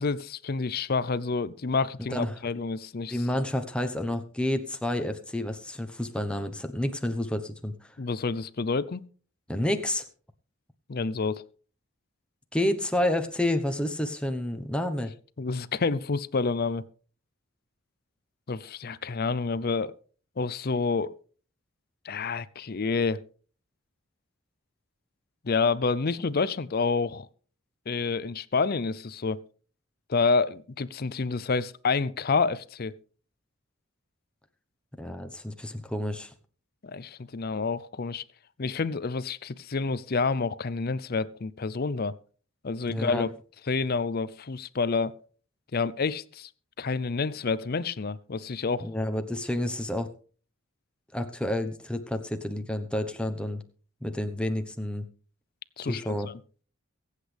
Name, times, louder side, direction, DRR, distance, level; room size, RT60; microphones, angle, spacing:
voice 1, 0.0-3.2 8.0-9.0 10.9-11.4 15.4-16.8 18.5-19.9 20.4-21.1 22.0-23.2 25.4-27.3 27.9-29.4 30.1-33.0 36.8-38.2 38.6-42.1 42.6-43.3 43.7-45.2 45.7-46.5 46.8-48.9 55.8-56.2, left 4 dB, 45° left, 0.5 m, -28 dB
voice 2, 2.0-2.4 3.1-7.9 9.5-10.0 12.5-15.1 35.0-36.3 42.9-43.3 48.8-50.1 51.1-53.6 54.0-55.0 55.9-56.3, left 1 dB, 5° left, 1.0 m, -29 dB
23.5 x 8.3 x 3.4 m
head